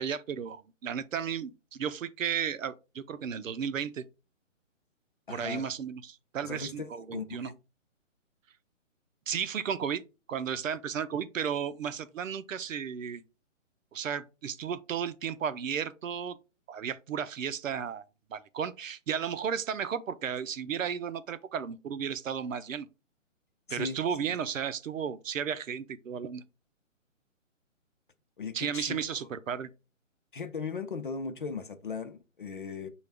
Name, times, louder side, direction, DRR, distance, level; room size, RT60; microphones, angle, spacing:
voice 1, 0.0-4.0 5.3-7.5 9.3-10.0 10.3-13.2 13.9-16.4 16.7-18.0 18.3-22.9 23.7-26.4 28.5-29.7, right 7 dB, 80° right, 0.6 m, -34 dB
voice 2, 5.3-5.6 6.4-6.7 7.1-7.5 23.7-24.3 28.4-29.0 30.3-32.9, left 5 dB, 40° left, 0.5 m, -37 dB
6.0 x 2.3 x 3.3 m
hypercardioid pair, 160°, 39 cm